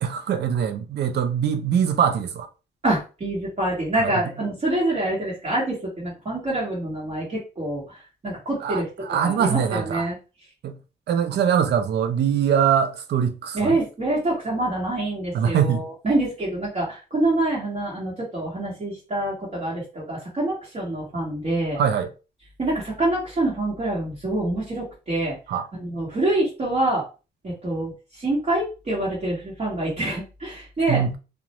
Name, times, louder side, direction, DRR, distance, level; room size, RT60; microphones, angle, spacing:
voice 1, 0.0-2.5 4.0-4.2 8.6-10.1 10.6-10.8 11.1-13.8 15.3-15.9 21.8-22.1 25.5-25.7 30.9-31.2, right 8 dB, 60° right, 0.5 m, -23 dB
voice 2, 2.8-7.8 8.2-8.9 9.2-10.2 13.5-21.8 22.6-25.4 25.8-27.0 27.4-27.9 28.2-31.2, right 1 dB, 30° right, 1.1 m, -26 dB
2.3 x 2.1 x 2.9 m
cardioid pair, 90°, 20 cm